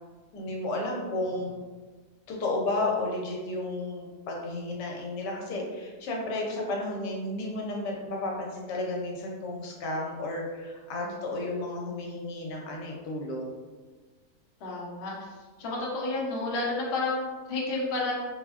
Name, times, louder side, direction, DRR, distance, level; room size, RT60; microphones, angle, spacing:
voice 1, 0.3-1.6 2.3-13.6, left 2 dB, 85° left, -1 dB, 1.3 m, -32 dB
voice 2, 14.6-18.1, left 2 dB, 60° left, -3 dB, 0.7 m, -31 dB
3.6 x 2.1 x 2.3 m, 1.3 s
omnidirectional pair, 1.8 m